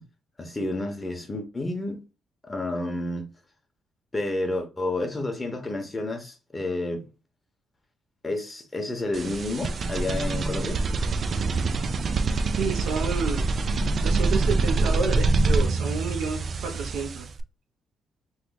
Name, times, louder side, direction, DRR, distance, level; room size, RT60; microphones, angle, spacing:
voice 1, 0.4-2.0 2.4-3.3 4.1-7.1 8.2-10.8 14.7-14.9, left 2 dB, 20° left, 0.9 m, -30 dB
sound 1, 9.1-17.4, right 3 dB, 45° right, 0.4 m, -25 dB
voice 2, 12.5-13.5 14.0-17.3, right 5 dB, 80° right, 0.7 m, -30 dB
3.2 x 2.1 x 3.8 m
cardioid pair, 90°, 0 cm